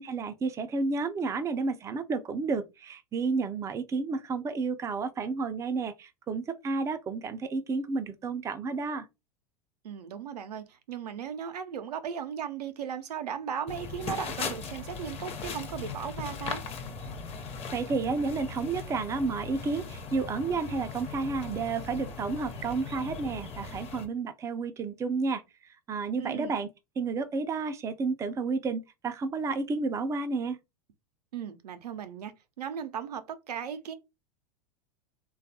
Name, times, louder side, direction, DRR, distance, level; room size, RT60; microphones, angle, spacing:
voice 1, 0.0-9.1 17.7-25.4 25.9-26.7 27.0-30.6, right 4 dB, 15° right, 0.3 m, -31 dB
voice 2, 9.8-16.6 26.2-26.5 31.3-33.9, right 8 dB, 80° right, 0.5 m, -37 dB
sound 1, 13.7-24.1, left 4 dB, 30° left, 0.7 m, -39 dB
3.2 x 2.3 x 2.7 m
hypercardioid pair, 95°, 20 cm